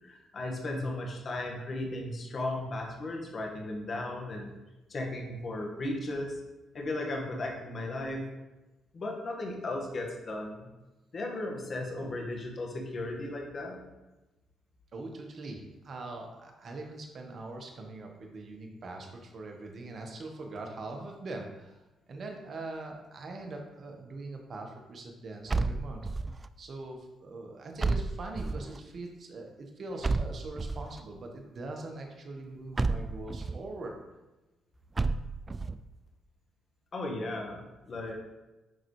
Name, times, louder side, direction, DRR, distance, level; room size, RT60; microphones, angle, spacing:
voice 1, 0.0-4.5 4.9-6.4 6.7-8.3 8.9-10.7 11.1-13.8 36.9-38.1, left 2 dB, 50° left, 0 dB, 1.7 m, -36 dB
voice 2, 14.9-21.8 22.1-26.1 26.6-33.9, right 2 dB, 55° right, 2 dB, 1.4 m, -42 dB
sound 1, 25.5-26.5 27.8-28.8 30.0-31.0 32.8-33.6 35.0-35.8, right 3 dB, 30° right, 0.3 m, -31 dB
10.5 x 4.1 x 3.3 m, 1.1 s
cardioid pair, 70°, 0 cm